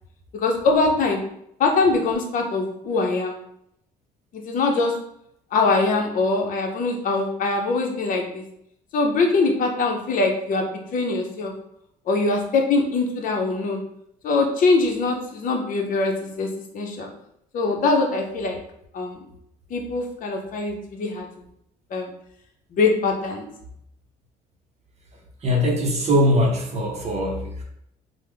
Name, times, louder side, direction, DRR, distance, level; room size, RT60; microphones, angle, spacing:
voice 1, 0.3-1.2 1.6-3.4 4.3-4.9 5.5-8.4 8.9-10.7 10.9-11.5 12.1-13.8 14.2-17.1 17.5-18.6 18.9-19.2 19.7-21.3 21.9-22.1 22.7-23.5, left 3 dB, 55° left, 2 dB, 0.7 m, -22 dB
voice 2, 25.4-27.6, equal, 40° right, 0 dB, 0.7 m, -21 dB
3.3 x 2.0 x 3.3 m, 0.75 s
cardioid pair, 110°, 17 cm